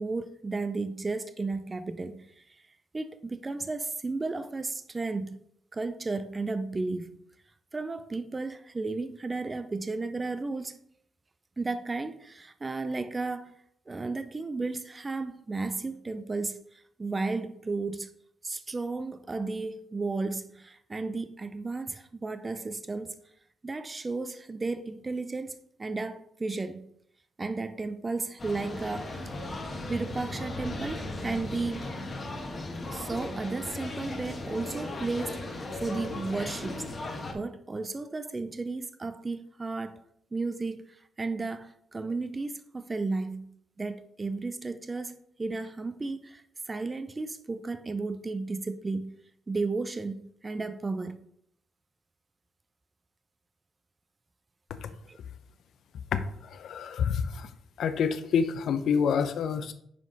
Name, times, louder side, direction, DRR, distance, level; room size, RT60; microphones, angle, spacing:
voice 1, 0.0-2.6 2.9-5.4 5.7-7.2 7.7-10.8 11.6-13.5 13.9-18.1 18.4-23.2 23.6-26.9 27.4-29.5 29.9-31.9 32.9-36.9 37.3-40.0 40.3-49.2 49.5-51.2 55.1-55.2, right 3 dB, 25° right, 0.4 m, -34 dB
sound 1, 28.4-37.3, left 2 dB, 30° left, 1.3 m, -37 dB
voice 2, 56.1-57.5 57.8-59.7, left 6 dB, 70° left, 0.6 m, -28 dB
5.7 x 5.0 x 4.0 m
cardioid pair, 90°, 0 cm